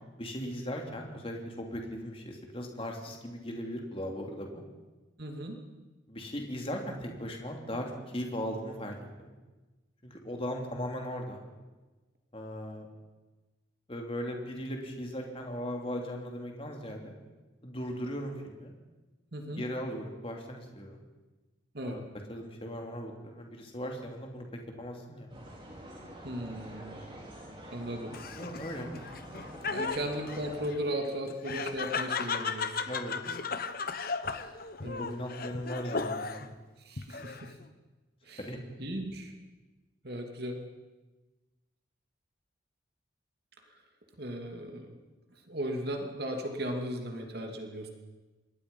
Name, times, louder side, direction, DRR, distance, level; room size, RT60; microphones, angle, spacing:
voice 1, 0.2-4.6 6.1-9.3 10.0-11.4 12.3-12.9 13.9-17.1 17.6-18.7 19.5-21.0 21.8-22.0 22.3-24.5 24.8-25.3 28.4-28.9 32.9-33.2 34.8-36.6 38.4-38.6, equal, 30° left, 2 dB, 3.0 m, -38 dB
voice 2, 5.2-5.6 19.3-19.6 21.7-22.0 26.2-26.8 27.7-28.1 29.7-32.8 34.8-35.0 36.8-37.6 38.2-38.5 38.8-39.3 40.0-40.6 43.7-43.8 44.2-45.0 45.3-47.9, equal, 55° right, 3 dB, 2.6 m, -36 dB
sound 1, 25.3-30.6, right 1 dB, 25° right, 5.1 m, -46 dB
Laughter, 28.1-36.5 37.0-37.6, left 5 dB, 50° left, 1.1 m, -36 dB
26.0 x 20.5 x 5.5 m, 1.2 s
head